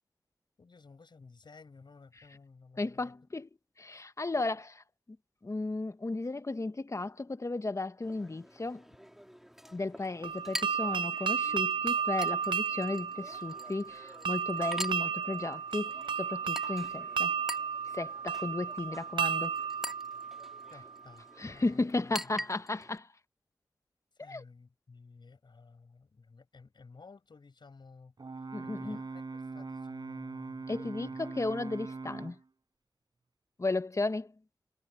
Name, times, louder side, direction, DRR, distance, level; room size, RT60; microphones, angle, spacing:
voice 1, 0.6-3.0 20.7-21.2 21.5-21.7 24.2-28.1 28.6-30.8, left 4 dB, 70° left, 6.4 m, -54 dB
voice 2, 2.8-3.5 3.8-4.8 5.4-8.9 9.7-17.3 17.9-19.6 21.4-23.1 24.2-24.4 28.5-29.0 30.7-32.4 33.6-34.3, left 2 dB, 40° left, 1.0 m, -34 dB
Chink clink, 8.0-23.0, equal, 5° right, 2.9 m, -46 dB
sound 1, 10.2-21.0, right 6 dB, 80° right, 0.5 m, -33 dB
Brass instrument, 28.2-32.4, right 3 dB, 60° right, 5.5 m, -41 dB
cardioid pair, 45°, 8 cm